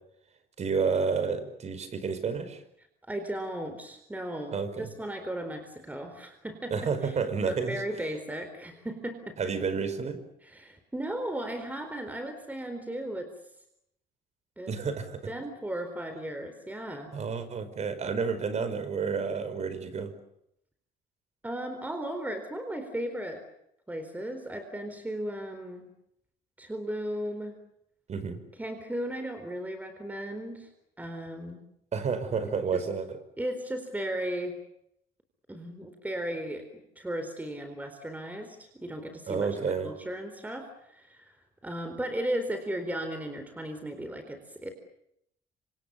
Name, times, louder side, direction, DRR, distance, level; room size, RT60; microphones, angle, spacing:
voice 1, 0.6-2.6 4.5-4.9 6.7-7.8 9.4-10.2 14.7-15.2 17.1-20.1 28.1-28.4 31.9-33.2 39.3-39.9, right 5 dB, 40° right, 12 dB, 5.2 m, -30 dB
voice 2, 3.1-7.2 7.5-9.4 10.4-13.3 14.6-14.7 15.3-17.1 21.4-23.4 23.9-25.9 26.6-27.6 28.6-30.7 31.0-31.6 32.7-32.9 33.4-34.6 35.5-36.7 37.0-39.5 39.8-41.4 41.6-44.7, right 1 dB, 10° right, 7 dB, 4.1 m, -36 dB
27.0 x 26.0 x 7.0 m, 0.77 s
cardioid pair, 110°, 17 cm